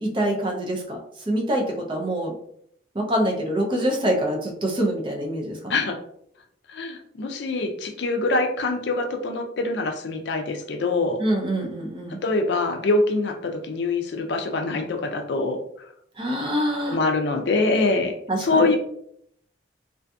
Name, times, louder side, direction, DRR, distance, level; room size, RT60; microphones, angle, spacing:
voice 1, 0.0-1.0 1.3-2.3 2.9-5.8 11.2-12.2 16.2-17.0 18.3-18.6, right 1 dB, 25° right, 1 dB, 0.4 m, -25 dB
voice 2, 6.7-11.2 12.2-15.6 16.9-18.8, left 3 dB, 65° left, 5 dB, 0.4 m, -24 dB
2.5 x 2.5 x 2.3 m, 0.70 s
head